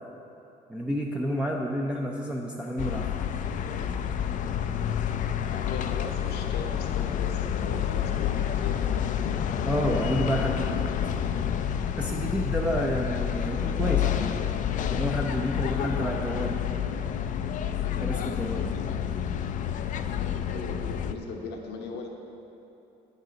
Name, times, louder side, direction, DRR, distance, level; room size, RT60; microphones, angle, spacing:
voice 1, 0.7-3.1 9.6-10.9 12.0-14.3 14.9-16.6 18.0-18.7, equal, 5° right, -2 dB, 0.6 m, -30 dB
sound 1, 2.8-21.1, left 9 dB, 50° left, 0.4 m, -29 dB
voice 2, 5.5-9.0 19.0-19.4 20.5-22.1, left 4 dB, 75° left, 2 dB, 0.9 m, -38 dB
8.2 x 6.6 x 5.1 m, 3.0 s
cardioid pair, 110°, 17 cm